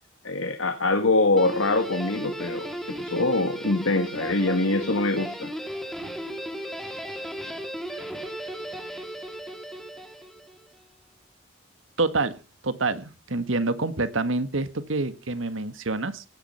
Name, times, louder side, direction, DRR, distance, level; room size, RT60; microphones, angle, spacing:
voice 1, 0.2-2.7 3.0-5.5, left 2 dB, 90° left, 7 dB, 1.8 m, -24 dB
Guitar, 1.3-10.7, equal, ahead, 2.8 m, -35 dB
voice 2, 12.0-12.4 12.6-16.2, right 3 dB, 90° right, 11 dB, 1.7 m, -27 dB
17.0 x 11.0 x 5.7 m, 0.33 s
head